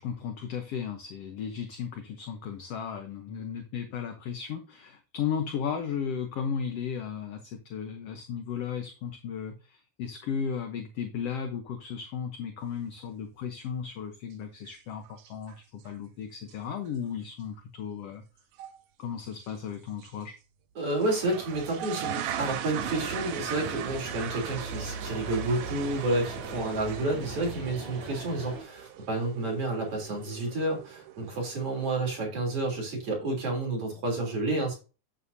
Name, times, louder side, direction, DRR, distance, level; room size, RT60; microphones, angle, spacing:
voice 1, 0.0-18.2 19.0-20.3, left 7 dB, 65° left, 6 dB, 1.7 m, -35 dB
sound 1, 14.7-14.8 15.1-15.5 15.9-16.0 16.5-16.6 16.9-17.0 18.6-18.8 19.3-19.5 20.0-20.1 20.9-32.2, right 8 dB, 90° right, 2.6 m, -39 dB
voice 2, 20.8-34.7, right 2 dB, 45° right, 0 dB, 4.1 m, -30 dB
sound 2, 22.8-28.6, right 2 dB, 65° right, 4.8 m, -42 dB
9.7 x 8.9 x 2.7 m, 0.32 s
omnidirectional pair, 3.7 m